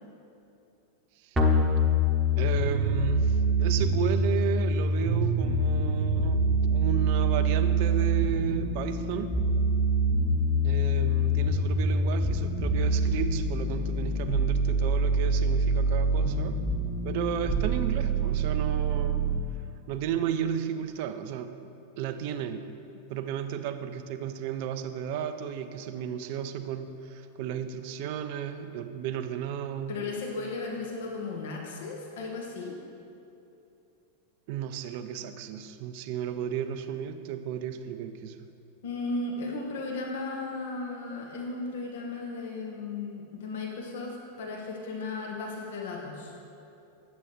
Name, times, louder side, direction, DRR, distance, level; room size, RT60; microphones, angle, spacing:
sound 1, 1.4-19.4, right 1 dB, 15° right, 0.9 m, -25 dB
voice 1, 2.4-9.4 10.6-16.6 17.0-19.3 19.9-21.6 22.0-22.7 23.1-30.0 34.5-38.5, right 9 dB, 45° right, 10 dB, 0.4 m, -33 dB
voice 2, 29.9-32.8 38.8-46.3, left 3 dB, 55° left, 0 dB, 0.9 m, -35 dB
9.1 x 7.7 x 3.1 m, 2.7 s
figure-of-eight pair, 90°, 0 cm